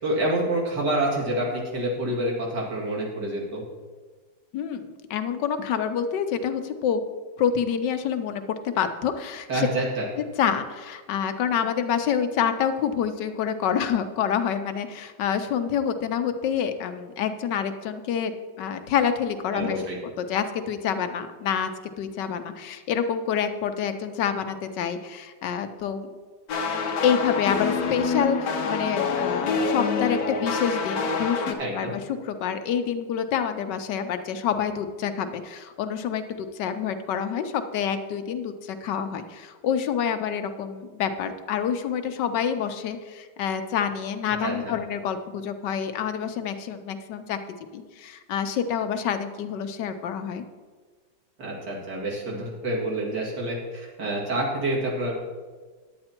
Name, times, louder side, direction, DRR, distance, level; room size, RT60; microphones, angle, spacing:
voice 1, 0.0-3.6 9.5-10.0 19.5-20.0 31.6-31.9 44.4-44.7 51.4-55.1, right 1 dB, 70° right, -4 dB, 3.0 m, -27 dB
voice 2, 4.5-7.0 7.4-9.7 10.4-21.7 22.0-26.1 27.0-31.5 31.7-47.4 47.7-50.4, left 8 dB, 85° left, 8 dB, 1.4 m, -27 dB
sound 1, 26.5-31.5, left 5 dB, 65° left, 1.3 m, -26 dB
10.5 x 8.8 x 4.4 m, 1.4 s
omnidirectional pair, 1.9 m